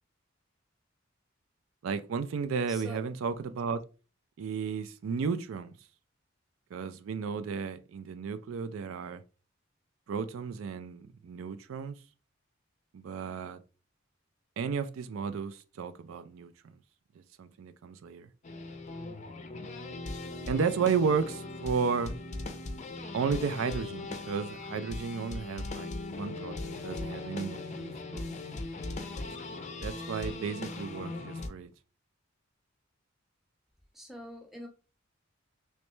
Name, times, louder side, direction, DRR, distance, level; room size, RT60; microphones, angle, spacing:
voice 1, 1.8-3.8 4.4-5.7 6.7-9.2 10.1-12.0 12.9-13.6 14.6-16.7 17.4-18.3 20.5-22.1 23.1-28.3 29.8-31.7, right 5 dB, 85° right, 0.4 m, -33 dB
voice 2, 2.7-3.0 33.9-34.7, equal, ahead, 0.8 m, -44 dB
sound 1, 18.4-31.5, left 2 dB, 35° left, 0.5 m, -39 dB
3.2 x 3.0 x 3.1 m
head